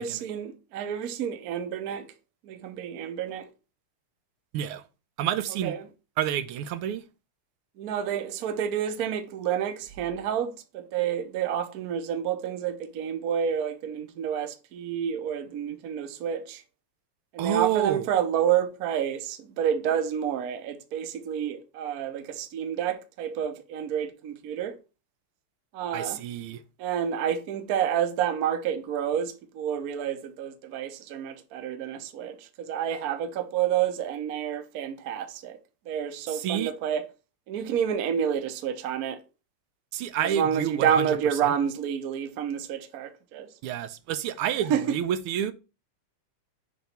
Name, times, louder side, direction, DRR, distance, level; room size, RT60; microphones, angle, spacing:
voice 1, 0.0-2.1 2.5-3.5 5.6-5.8 7.8-16.6 17.3-24.8 25.7-26.2 26.8-35.6 35.9-37.0 37.5-39.2 40.2-43.5 44.7-45.0, right 9 dB, 60° right, 1.0 m, -29 dB
voice 2, 5.2-5.8 6.2-7.0 17.4-18.1 25.9-26.6 36.3-36.7 39.9-41.5 43.6-45.5, right 10 dB, 85° right, 1.6 m, -29 dB
6.9 x 3.1 x 5.7 m
omnidirectional pair, 2.4 m